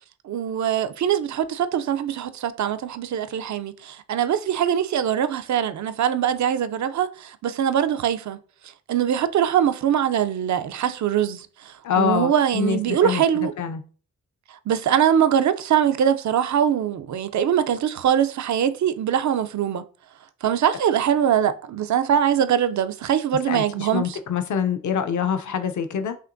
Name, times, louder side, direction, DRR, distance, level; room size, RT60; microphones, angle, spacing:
voice 1, 0.2-8.4 8.9-13.5 14.5-19.8 20.4-24.2, right 9 dB, 65° right, 0.4 m, -22 dB
voice 2, 11.8-13.8 23.5-26.2, left 7 dB, 70° left, 0.5 m, -25 dB
5.7 x 2.8 x 2.5 m
wide cardioid pair, 100°, 31 cm